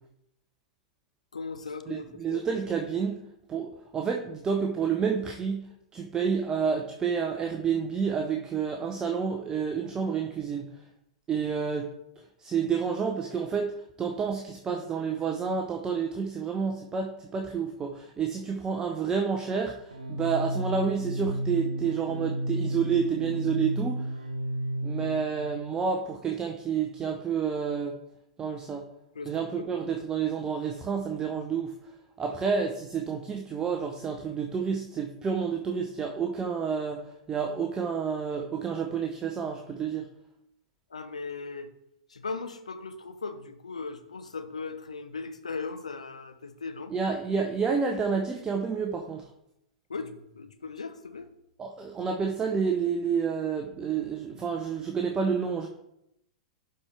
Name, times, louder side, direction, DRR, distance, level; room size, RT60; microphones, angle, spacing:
voice 1, 1.3-2.0 2.3-2.4 29.1-29.7 40.9-41.7 42.1-46.9 49.9-51.3, left 4 dB, 80° left, 9 dB, 0.8 m, -38 dB
voice 2, 1.9-3.2 3.5-5.6 5.9-10.7 11.3-11.9 12.4-13.7 14.0-24.1 24.8-28.0 28.4-28.8 29.3-31.7 32.2-37.0 37.3-40.1 46.9-49.3 51.6-55.7, right 6 dB, 20° right, 3 dB, 0.7 m, -29 dB
sound 1, 19.9-25.6, right 1 dB, 85° right, 1.1 m, -32 dB
11.5 x 4.5 x 3.3 m, 0.81 s
figure-of-eight pair, 100°, 4 cm